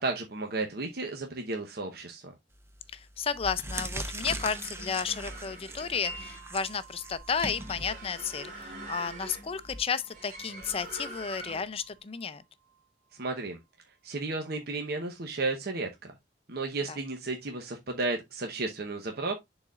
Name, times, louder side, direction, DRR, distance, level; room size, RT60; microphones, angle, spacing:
voice 1, 0.0-2.3 13.2-13.6 14.0-16.1 16.5-19.3, right 3 dB, 60° right, 0.9 m, -33 dB
sound 1, 2.5-2.8 3.3-9.8, right 1 dB, 15° right, 0.8 m, -40 dB
voice 2, 2.9-12.4 16.9-17.0, left 6 dB, 35° left, 0.5 m, -33 dB
sound 2, 4.1-11.8, right 2 dB, 45° right, 3.1 m, -45 dB
Wind chime, 6.0-13.7, right 2 dB, 10° left, 1.1 m, -51 dB
10.5 x 4.0 x 2.4 m
head